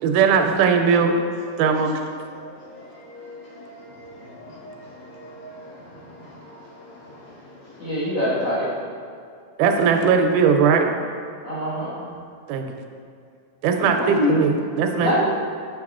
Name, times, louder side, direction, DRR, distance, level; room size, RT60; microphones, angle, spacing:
voice 1, 0.0-1.2 1.6-2.0 9.6-10.9 12.5-12.7 13.6-15.2, right 6 dB, 85° right, 4 dB, 2.1 m, -19 dB
voice 2, 2.4-5.8 6.3-7.0, left 1 dB, 90° left, -5 dB, 2.9 m, -42 dB
voice 3, 7.8-8.7 11.4-11.9 13.9-14.3 15.0-15.2, left 1 dB, 45° left, -9 dB, 1.9 m, -24 dB
7.0 x 6.5 x 2.4 m, 2.3 s
omnidirectional pair, 3.6 m